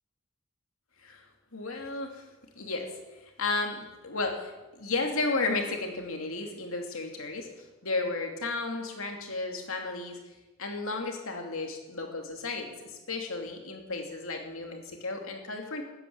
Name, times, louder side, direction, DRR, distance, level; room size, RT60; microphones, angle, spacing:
voice 1, 1.5-2.3 2.6-2.9 3.2-10.2 10.6-15.8, left 3 dB, 75° left, 3 dB, 2.7 m, -33 dB
14.5 x 10.0 x 8.5 m, 1.1 s
head